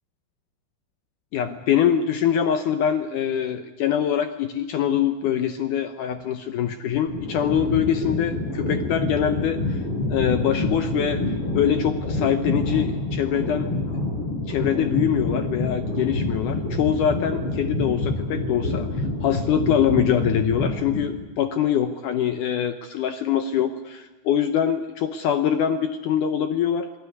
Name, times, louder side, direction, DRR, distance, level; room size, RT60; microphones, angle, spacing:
voice 1, 1.3-9.8 10.1-11.2 11.5-13.7 14.5-26.9, left 9 dB, 85° left, 9 dB, 1.7 m, -24 dB
sound 1, 7.1-21.3, left 2 dB, 30° left, 6.1 m, -27 dB
28.5 x 19.0 x 9.6 m, 1.2 s
omnidirectional pair, 5.0 m